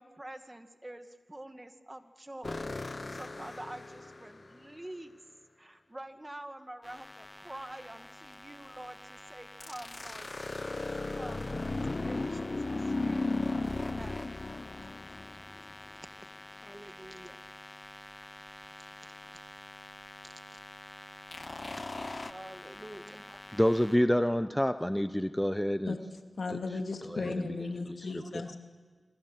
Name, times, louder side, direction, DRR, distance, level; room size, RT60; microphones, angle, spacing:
voice 1, 0.0-5.2 5.6-10.9 11.2-11.6 12.0-13.4 13.7-14.3 16.2-16.3 16.6-17.4 19.1-19.4 20.2-20.6 22.2-23.8 28.2-28.3, right 1 dB, 20° right, 7 dB, 2.1 m, -47 dB
sound 1, 2.4-4.6 9.6-15.9 21.3-22.3, left 2 dB, 45° left, 0.8 m, -36 dB
sound 2, 6.8-24.0, left 1 dB, 25° left, 1.6 m, -49 dB
voice 2, 23.5-25.9 27.1-27.5 28.3-28.4, equal, 5° left, 10 dB, 0.9 m, -27 dB
voice 3, 26.3-28.6, left 3 dB, 75° left, 4 dB, 2.7 m, -35 dB
26.5 x 25.5 x 7.5 m, 1.5 s
cardioid pair, 45°, 0 cm